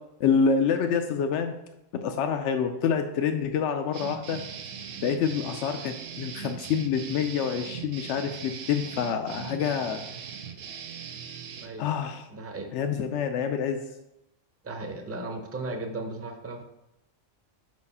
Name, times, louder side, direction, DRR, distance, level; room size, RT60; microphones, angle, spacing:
voice 1, 0.2-1.6 2.0-4.4 5.0-10.0 11.8-12.2 12.7-13.8, left 6 dB, 70° left, 6 dB, 0.8 m, -27 dB
sound 1, 3.9-11.7, right 7 dB, 85° right, 1.1 m, -40 dB
voice 2, 11.6-12.7 14.6-16.6, right 2 dB, 15° right, 4 dB, 0.5 m, -36 dB
5.2 x 4.7 x 5.5 m, 0.89 s
omnidirectional pair, 1.3 m